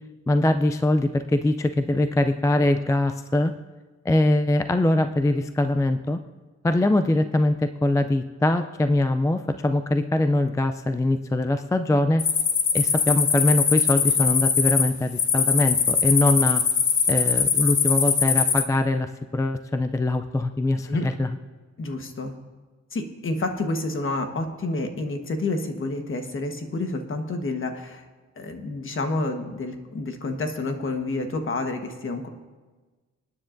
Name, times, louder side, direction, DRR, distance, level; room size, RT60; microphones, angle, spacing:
voice 1, 0.3-3.5 4.1-6.2 6.6-12.3 12.7-16.6 17.1-21.3, left 2 dB, 10° left, 8 dB, 0.3 m, -22 dB
sound 1, 12.2-18.6, left 6 dB, 75° left, 1.2 m, -22 dB
voice 2, 21.8-22.3 22.9-28.0 28.4-32.3, left 2 dB, 45° left, 5 dB, 1.3 m, -29 dB
26.5 x 9.7 x 2.6 m, 1.3 s
wide cardioid pair, 150°, 29 cm